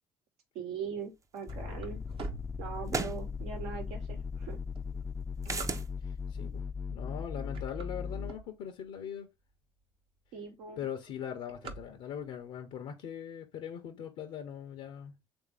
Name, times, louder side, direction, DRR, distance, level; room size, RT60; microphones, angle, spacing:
voice 1, 0.5-2.0 2.6-4.6 10.3-10.8, right 6 dB, 85° right, 1.1 m, -41 dB
sound 1, 1.0-3.3 3.8-3.9 4.6-6.3 6.9-7.1 7.4-9.0 9.5-9.6 9.8-9.9 10.2-10.5 10.8-12.4, right 3 dB, 55° right, 0.8 m, -45 dB
sound 2, 1.5-8.3, left 5 dB, 25° left, 0.3 m, -38 dB
sound 3, 1.5-1.6 2.9-3.2 5.4-5.9, right 4 dB, 30° right, 0.5 m, -34 dB
voice 2, 6.0-9.3 10.8-15.2, left 8 dB, 75° left, 0.6 m, -41 dB
3.2 x 2.6 x 3.2 m
supercardioid pair, 65°, 11 cm